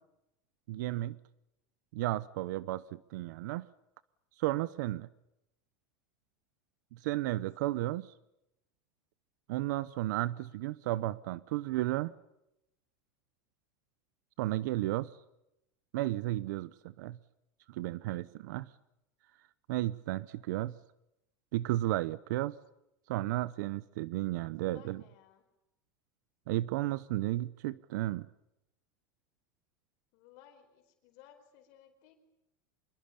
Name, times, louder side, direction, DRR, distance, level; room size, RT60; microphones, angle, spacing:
voice 1, 0.7-1.2 1.9-3.7 4.4-5.1 6.9-8.1 9.5-12.1 14.4-15.1 15.9-16.7 17.0-17.2 17.7-18.7 19.7-20.7 21.5-22.6 23.1-25.0 26.5-28.3, right 16 dB, 75° right, 18 dB, 0.9 m, -33 dB
voice 2, 24.5-25.4 30.1-32.2, left 10 dB, 60° left, 5 dB, 4.5 m, -59 dB
26.0 x 22.5 x 8.5 m, 0.86 s
supercardioid pair, 150°, 10 cm